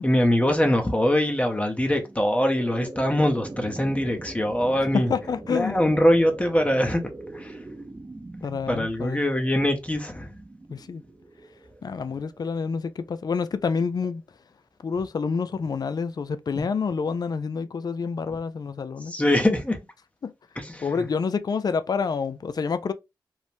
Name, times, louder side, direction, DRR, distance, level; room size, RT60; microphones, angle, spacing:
voice 1, 0.0-5.1 5.5-7.0 7.3-7.6 8.7-10.3 16.5-16.6 19.1-19.8 20.6-20.9, left 1 dB, 15° left, 0.7 m, -23 dB
sound 1, 2.0-13.1, right 2 dB, 30° right, 0.6 m, -42 dB
voice 2, 4.8-5.8 8.4-9.2 10.7-11.0 11.8-14.2 14.8-19.1 20.2-20.3 20.8-22.9, left 5 dB, 55° left, 0.3 m, -28 dB
3.1 x 2.0 x 2.6 m
cardioid pair, 45°, 8 cm